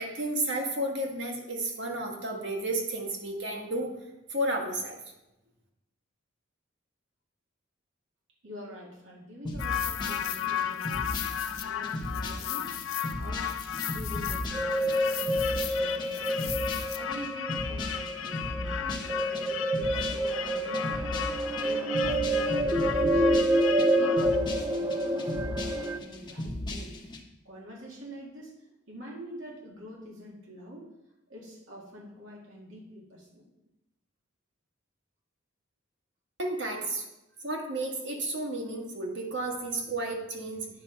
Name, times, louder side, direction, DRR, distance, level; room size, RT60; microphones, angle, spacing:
voice 1, 0.0-3.9 4.3-5.0 36.4-37.0 37.4-40.7, right 1 dB, 65° right, 0 dB, 1.6 m, -32 dB
voice 2, 8.4-12.8 13.2-13.5 13.9-15.5 15.7-21.3 21.6-23.5 23.9-30.9 31.3-33.5, equal, 90° right, -3 dB, 1.9 m, -46 dB
sound 1, 9.4-27.2, left 1 dB, 25° left, 0.9 m, -37 dB
sound 2, 9.6-24.4, left 10 dB, 85° left, 0.4 m, -35 dB
sound 3, 14.5-26.0, right 1 dB, 20° right, 0.5 m, -28 dB
9.5 x 5.3 x 4.5 m, 0.92 s
head